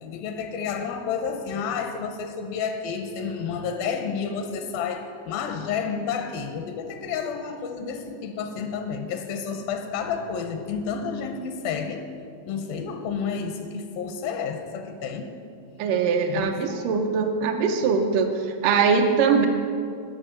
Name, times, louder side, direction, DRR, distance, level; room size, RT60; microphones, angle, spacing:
voice 1, 0.0-12.1 12.5-15.3 16.3-16.9, left 6 dB, 85° left, 6 dB, 2.4 m, -30 dB
voice 2, 15.8-19.5, right 5 dB, 85° right, 3 dB, 2.0 m, -22 dB
11.5 x 5.2 x 8.7 m, 2.4 s
omnidirectional pair, 4.3 m